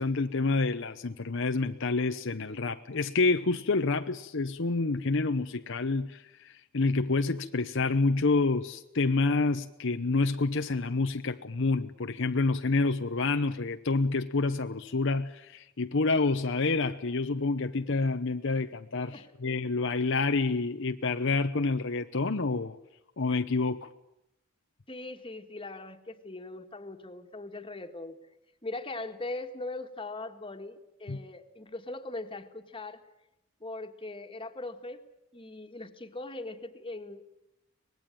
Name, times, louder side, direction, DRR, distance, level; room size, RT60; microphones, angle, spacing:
voice 1, 0.0-19.2 19.4-22.8 23.2-23.9 31.1-31.2, left 3 dB, 60° left, 0.8 m, -28 dB
voice 2, 19.1-19.5 24.9-28.2 28.6-33.0 33.6-35.0 35.3-37.2, left 2 dB, 25° left, 1.7 m, -40 dB
24.5 x 20.0 x 9.1 m
head